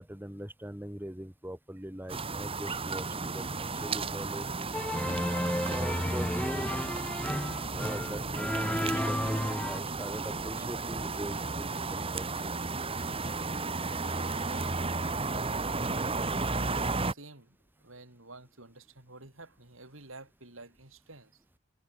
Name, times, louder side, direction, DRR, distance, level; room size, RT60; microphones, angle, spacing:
voice 1, 0.0-4.7 5.7-6.7 7.7-12.5, equal, 10° right, 2.1 m, -41 dB
sound 1, 2.1-17.1, right 3 dB, 30° right, 1.9 m, -34 dB
sound 2, 4.7-9.8, equal, 5° left, 1.8 m, -32 dB
voice 2, 14.3-14.8 16.5-21.4, right 2 dB, 70° right, 7.9 m, -50 dB
head